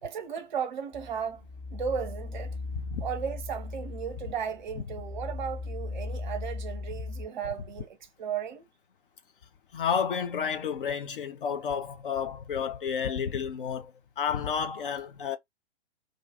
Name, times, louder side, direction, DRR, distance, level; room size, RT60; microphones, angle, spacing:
voice 1, 0.0-1.4 1.7-2.6 3.0-8.7, right 7 dB, 45° right, 0.6 m, -35 dB
sound 1, 0.9-7.3, left 3 dB, 30° left, 1.0 m, -38 dB
voice 2, 9.7-15.4, left 7 dB, 50° left, 0.5 m, -31 dB
2.4 x 2.3 x 2.5 m
figure-of-eight pair, 115°, 34 cm